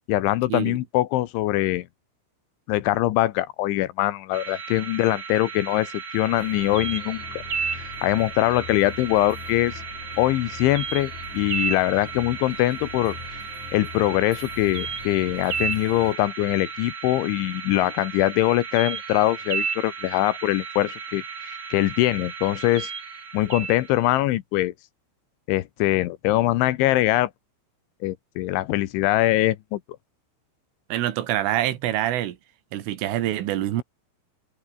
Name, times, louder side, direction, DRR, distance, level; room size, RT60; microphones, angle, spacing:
voice 1, 0.1-1.9 2.7-7.2 7.7-9.8 10.2-13.4 13.7-22.9 23.3-24.7 25.5-27.3 28.0-29.8, left 16 dB, 80° left, 3.4 m, -23 dB
sound 1, 4.3-24.2, right 5 dB, 35° right, 4.0 m, -34 dB
sound 2, 6.3-16.2, left 6 dB, 40° left, 4.5 m, -42 dB
voice 2, 30.9-32.4 32.7-33.8, right 13 dB, 80° right, 4.3 m, -25 dB
omnidirectional pair, 5.6 m